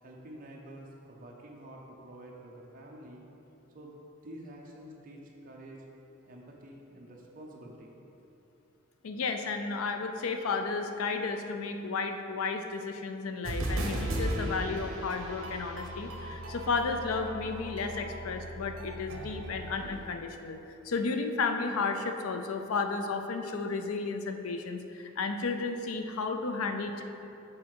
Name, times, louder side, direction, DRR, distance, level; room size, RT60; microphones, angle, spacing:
voice 1, 0.0-3.2 3.7-4.0 4.2-5.8 6.3-8.0, right 1 dB, 40° right, -2 dB, 0.7 m, -48 dB
voice 2, 9.0-20.6 20.8-27.0, left 4 dB, 85° left, 6 dB, 0.5 m, -33 dB
sound 1, 13.4-20.1, right 1 dB, 75° right, 0.8 m, -36 dB
6.4 x 3.6 x 4.6 m, 2.9 s
head